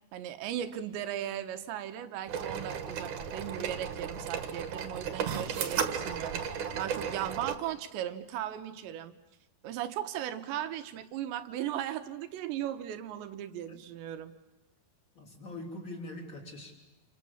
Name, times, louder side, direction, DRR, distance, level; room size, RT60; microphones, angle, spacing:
voice 1, 0.1-9.2 9.6-14.3, right 11 dB, 85° right, 9 dB, 3.5 m, -37 dB
sound 1, 2.3-7.6, right 7 dB, 55° right, 2.6 m, -34 dB
voice 2, 15.1-16.8, left 1 dB, 20° left, 3 dB, 3.4 m, -43 dB
28.0 x 27.5 x 7.2 m, 1.0 s
omnidirectional pair, 5.0 m